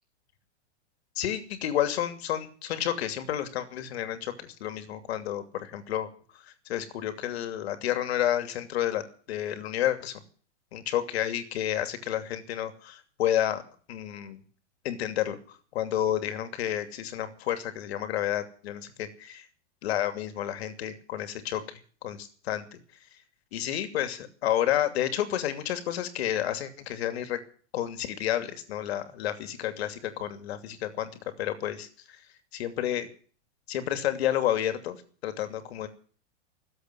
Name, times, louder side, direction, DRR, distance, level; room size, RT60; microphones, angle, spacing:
voice 1, 1.2-6.1 6.3-9.0 9.3-10.2 10.7-13.6 13.9-14.4 14.8-15.4 15.7-19.4 19.8-22.8 23.5-27.4 27.7-31.1 31.4-31.9 32.5-33.1 33.7-35.0 35.2-35.9, left 11 dB, 65° left, 9 dB, 2.7 m, -30 dB
17.5 x 8.0 x 9.9 m, 0.41 s
supercardioid pair, 160°, 34 cm